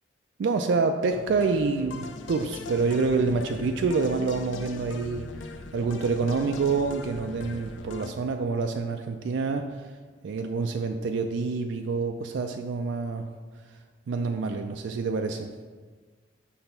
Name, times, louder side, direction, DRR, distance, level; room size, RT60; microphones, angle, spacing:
voice 1, 0.4-5.3 5.7-9.8 10.2-13.3 14.1-15.5, right 4 dB, 70° right, 5 dB, 0.4 m, -27 dB
sound 1, 1.1-8.1, left 3 dB, 80° left, 0.4 m, -40 dB
6.1 x 3.4 x 5.4 m, 1.5 s
head